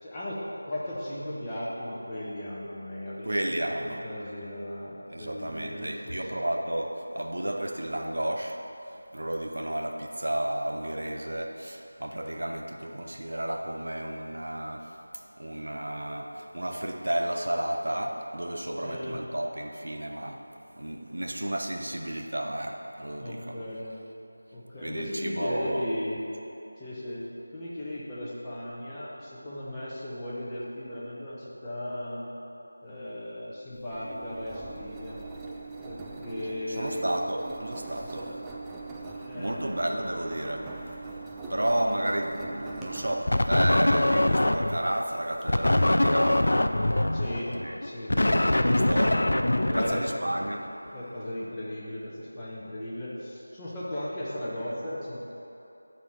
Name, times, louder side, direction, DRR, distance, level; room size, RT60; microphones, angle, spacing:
voice 1, 0.0-3.4 3.8-6.4 18.8-19.2 23.2-23.9 24.5-26.2 26.8-27.2 27.5-32.2 32.8-35.2 35.8-37.0 38.2-38.4 39.3-39.9 47.1-47.5 47.8-49.2 49.6-50.0 50.9-55.2, left 1 dB, 10° left, -9 dB, 1.2 m, -36 dB
voice 2, 3.2-4.1 5.1-20.5 20.8-23.6 24.8-25.9 36.7-38.4 39.3-47.2 47.6-47.8 48.2-49.2 49.7-50.7, right 1 dB, 70° right, 3 dB, 0.9 m, -32 dB
Engine, 33.7-45.4, right 3 dB, 5° right, 0.4 m, -42 dB
sound 1, 43.3-44.9 45.5-50.6, left 1 dB, 65° left, 0.4 m, -23 dB
11.0 x 4.3 x 5.9 m, 3.0 s
figure-of-eight pair, 170°, 0 cm